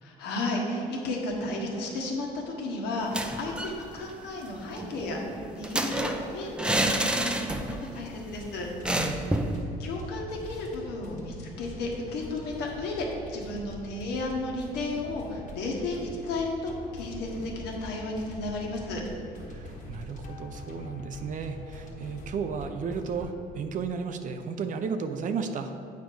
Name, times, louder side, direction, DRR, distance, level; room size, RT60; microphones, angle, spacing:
voice 1, 0.0-7.6 7.9-8.7 9.8-19.0, left 2 dB, 80° left, 0 dB, 1.4 m, -33 dB
sound 1, 3.0-3.8 4.1-4.2 4.5-7.9 8.2-8.3 8.8-9.6, right 1 dB, 5° right, 0.5 m, -29 dB
sound 2, 8.3-23.3, left 2 dB, 45° left, 1.5 m, -44 dB
voice 2, 8.9-9.3 19.5-25.7, right 5 dB, 50° right, 8 dB, 0.6 m, -34 dB
8.3 x 5.2 x 4.7 m, 2.6 s
cardioid pair, 110°, 17 cm